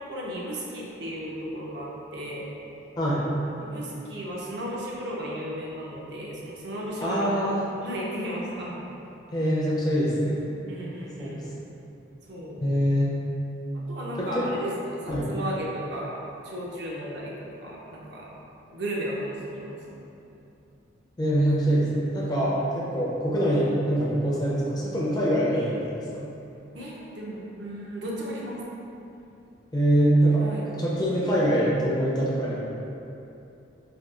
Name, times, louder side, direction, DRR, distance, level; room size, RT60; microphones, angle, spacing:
voice 1, 0.0-2.5 3.6-7.5 7.8-8.8 10.7-11.4 12.3-12.6 13.7-16.1 16.4-18.3 18.7-20.0 26.7-28.6 30.4-30.7, equal, 60° right, -4 dB, 0.5 m, -35 dB
voice 2, 7.0-7.6 9.3-10.5 11.2-11.7 12.6-13.2 14.2-14.4 15.1-15.3 21.2-26.1 29.7-30.4 30.8-32.6, right 1 dB, 20° left, -7 dB, 0.4 m, -24 dB
4.2 x 2.3 x 2.3 m, 2.8 s
head